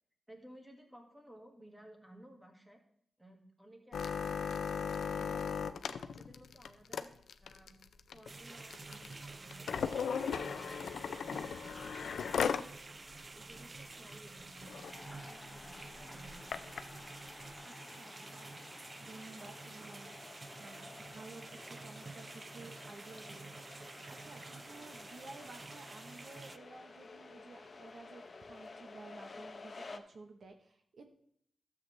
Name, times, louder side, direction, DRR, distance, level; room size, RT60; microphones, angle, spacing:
voice 1, 0.3-2.8 3.2-7.1 7.4-7.8 8.1-12.6 13.3-16.6, right 1 dB, 10° right, 2 dB, 1.8 m, -57 dB
sound 1, 3.9-12.7 13.1-13.2 13.5-13.8 14.3-14.4 14.6-14.9 15.6-16.8 17.5-17.6, left 6 dB, 90° left, 0.5 m, -37 dB
sound 2, 8.3-26.6, right 3 dB, 30° right, 0.4 m, -50 dB
sound 3, 14.8-30.0, left 3 dB, 40° left, 0.7 m, -53 dB
voice 2, 17.6-31.1, right 3 dB, 60° right, 5 dB, 0.9 m, -54 dB
13.0 x 7.6 x 3.2 m, 0.68 s
wide cardioid pair, 120°, 0 cm